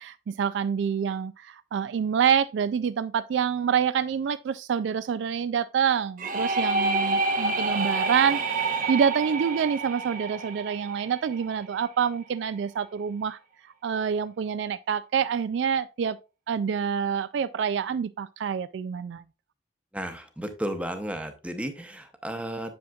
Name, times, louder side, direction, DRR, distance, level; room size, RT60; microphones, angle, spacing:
voice 1, 0.0-8.4 8.9-13.4 13.8-16.2 16.5-19.2, right 7 dB, 65° right, 0.3 m, -27 dB
sound 1, 6.2-11.8, right 3 dB, 45° right, 0.9 m, -28 dB
voice 2, 19.9-22.8, right 1 dB, 5° right, 0.8 m, -33 dB
7.7 x 7.0 x 2.3 m
head